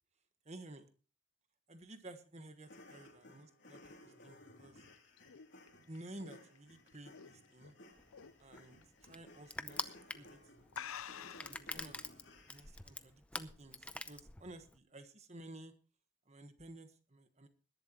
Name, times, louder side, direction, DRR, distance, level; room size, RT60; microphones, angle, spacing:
voice 1, 0.4-0.9 1.7-4.8 5.9-7.8 8.4-10.4 11.4-15.7 16.3-17.5, right 1 dB, 30° right, 9 dB, 1.3 m, -53 dB
sound 1, 2.6-12.9, left 1 dB, 60° left, 3.1 m, -59 dB
sound 2, 4.6-7.7 8.1-8.4 8.8-8.9 9.7-9.9 10.2-10.3 10.7-11.7, left 8 dB, 80° left, 0.6 m, -48 dB
Crushing, 8.0-14.8, left 2 dB, 5° left, 0.6 m, -46 dB
21.0 x 11.5 x 3.0 m, 0.35 s
head